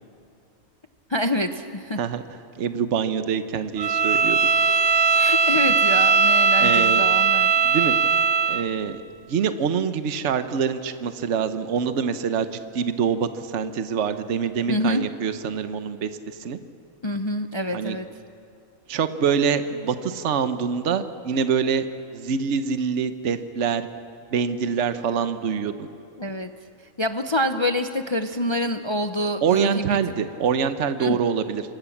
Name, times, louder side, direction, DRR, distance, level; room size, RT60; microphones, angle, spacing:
voice 1, 1.1-2.0 4.5-4.8 5.1-7.5 14.7-15.0 17.0-18.1 26.2-26.5 27.0-30.0 31.0-31.2, left 1 dB, 25° left, 7 dB, 0.6 m, -26 dB
voice 2, 2.6-4.4 6.6-7.0 7.6-8.0 8.5-9.0 9.3-16.6 17.7-18.0 18.9-21.9 22.1-23.9 24.3-25.9 29.4-31.6, right 6 dB, 60° right, 10 dB, 1.2 m, -25 dB
Bowed string instrument, 3.8-8.7, right 5 dB, 85° right, 1.4 m, -19 dB
26.5 x 25.5 x 7.2 m, 2.7 s
omnidirectional pair, 1.4 m